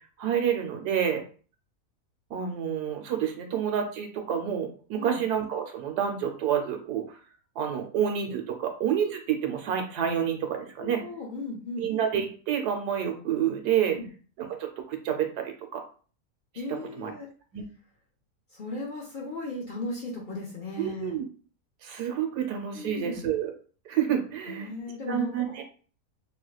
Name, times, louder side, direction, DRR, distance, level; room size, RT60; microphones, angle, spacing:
voice 1, 0.2-1.2 2.3-7.0 7.6-11.0 11.8-14.0 14.4-15.8 17.0-17.1 17.5-17.6 20.8-21.2 21.8-23.5 23.9-24.7 25.1-25.6, right 9 dB, 80° right, 5 dB, 1.2 m, -28 dB
voice 2, 10.8-11.9 13.9-14.1 16.5-17.3 18.5-21.2 22.7-23.2 24.5-25.5, left 2 dB, 90° left, -3 dB, 0.4 m, -36 dB
3.2 x 3.0 x 2.3 m, 0.40 s
omnidirectional pair, 1.7 m